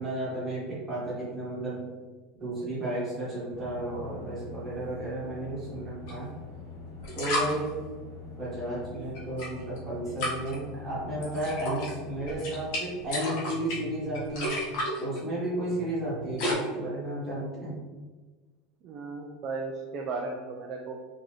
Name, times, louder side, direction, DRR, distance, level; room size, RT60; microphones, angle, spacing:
voice 1, 0.0-1.8 2.4-6.3 7.1-7.7 8.4-14.6 15.0-17.8, right 1 dB, 10° right, -9 dB, 1.2 m, -33 dB
sound 1, 3.5-12.7, left 3 dB, 70° left, 1.2 m, -44 dB
sound 2, 6.1-6.2 7.0-7.5 9.1-9.8 10.2-10.5 11.2-11.9 12.2-16.5, left 1 dB, 50° left, 1.0 m, -33 dB
voice 2, 18.8-21.0, right 3 dB, 30° right, 0 dB, 0.3 m, -35 dB
3.8 x 2.6 x 3.0 m, 1.3 s
supercardioid pair, 175°, 0 cm